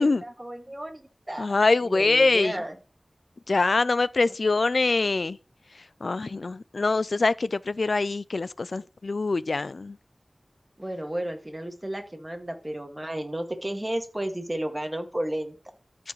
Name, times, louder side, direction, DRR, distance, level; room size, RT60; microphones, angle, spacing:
voice 1, 0.0-1.5 1.8-2.8 10.8-15.6, right 1 dB, 20° right, 1.9 m, -33 dB
voice 2, 1.4-2.6 3.5-5.4 6.0-10.0, left 3 dB, 80° left, 0.4 m, -24 dB
14.0 x 6.0 x 3.1 m
wide cardioid pair, 55°, 0 cm